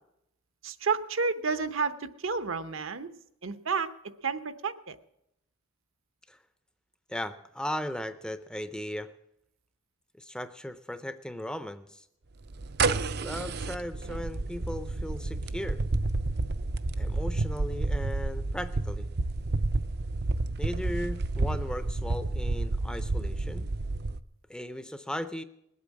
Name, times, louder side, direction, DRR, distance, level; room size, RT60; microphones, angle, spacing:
voice 1, 0.6-3.1 3.4-3.9 4.2-5.0, right 5 dB, 70° right, 11 dB, 0.9 m, -30 dB
voice 2, 7.1-9.1 10.1-12.0 13.2-15.8 17.0-19.1 20.6-23.7 24.5-25.4, left 1 dB, 5° left, 11 dB, 0.5 m, -37 dB
sound 1, 12.5-24.2, right 2 dB, 50° right, 0.5 m, -30 dB
20.0 x 8.4 x 7.4 m, 0.80 s
head